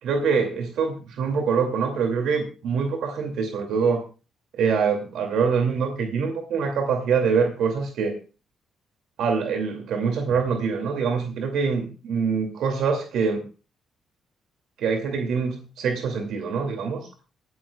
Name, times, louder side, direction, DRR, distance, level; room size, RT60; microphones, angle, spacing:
voice 1, 0.0-4.0 4.6-8.2 9.2-13.4 14.8-17.1, right 5 dB, 75° right, 4 dB, 2.4 m, -24 dB
23.5 x 9.5 x 2.3 m, 0.32 s
cardioid pair, 90°, 0 cm